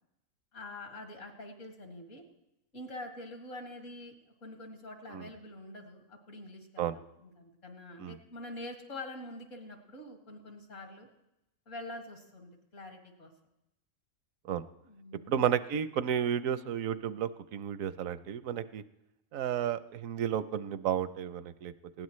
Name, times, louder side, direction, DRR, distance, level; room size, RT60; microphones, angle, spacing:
voice 1, 0.5-2.2 2.7-4.1 4.4-11.1 11.7-13.3 14.8-15.4, left 2 dB, 70° left, 2 dB, 2.7 m, -45 dB
voice 2, 15.3-18.8 19.3-22.0, right 9 dB, 80° right, 14 dB, 1.1 m, -32 dB
19.5 x 17.0 x 3.2 m, 0.89 s
omnidirectional pair, 1.4 m